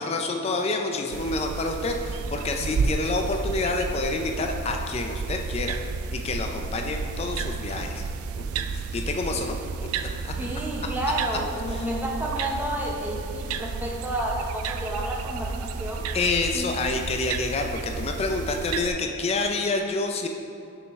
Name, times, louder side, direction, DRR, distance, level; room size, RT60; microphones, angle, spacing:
voice 1, 0.0-5.8 6.1-8.0 8.5-9.6 10.0-10.3 11.7-11.9 16.1-20.3, left 3 dB, 30° left, 4 dB, 0.3 m, -28 dB
sound 1, 1.1-18.9, right 4 dB, 80° right, 0.3 m, -32 dB
voice 2, 10.4-16.0 16.5-16.7, right 1 dB, 10° right, -2 dB, 0.7 m, -30 dB
6.2 x 5.3 x 3.5 m, 2.6 s
head